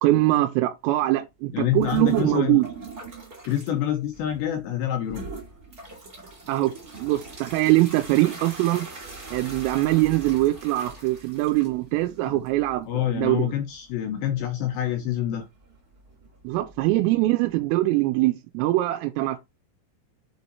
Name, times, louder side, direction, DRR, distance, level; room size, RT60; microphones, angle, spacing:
voice 1, 0.0-2.7 6.5-8.9 9.3-13.5 16.4-19.4, right 17 dB, 85° right, 3.3 m, -23 dB
voice 2, 1.5-2.6 3.4-5.3 12.3-12.4 12.8-15.5, left 11 dB, 75° left, 2.7 m, -27 dB
sound 1, 1.8-3.7 4.1-4.6 5.1-17.7, right 3 dB, 25° right, 2.7 m, -42 dB
7.5 x 5.4 x 4.6 m
omnidirectional pair, 5.8 m